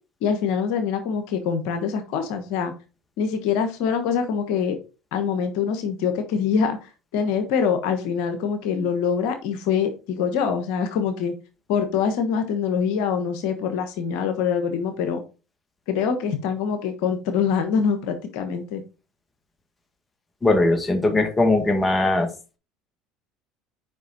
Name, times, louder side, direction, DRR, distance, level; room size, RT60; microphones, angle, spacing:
voice 1, 0.2-2.7 3.2-4.8 5.1-11.3 11.7-15.2 15.9-18.8, left 6 dB, 70° left, 1.1 m, -24 dB
voice 2, 20.4-22.3, left 2 dB, 20° left, 1.8 m, -20 dB
7.3 x 5.2 x 3.9 m
hypercardioid pair, 80°, 0 cm